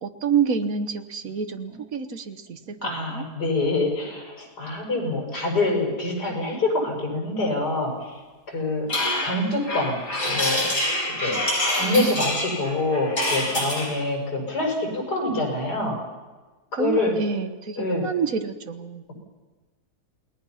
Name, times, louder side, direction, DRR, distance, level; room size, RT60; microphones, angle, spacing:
voice 1, 0.0-3.2 16.8-19.0, right 6 dB, 60° right, 9 dB, 1.6 m, -28 dB
voice 2, 2.6-8.2 8.5-8.9 9.2-10.0 10.2-10.7 11.1-11.4 11.7-16.0 16.7-17.1 17.8-18.1, left 2 dB, 80° left, 0 dB, 6.6 m, -26 dB
sound 1, 8.9-14.0, left 1 dB, 50° left, 6.2 m, -26 dB
28.5 x 19.5 x 5.8 m, 1.3 s
omnidirectional pair, 1.7 m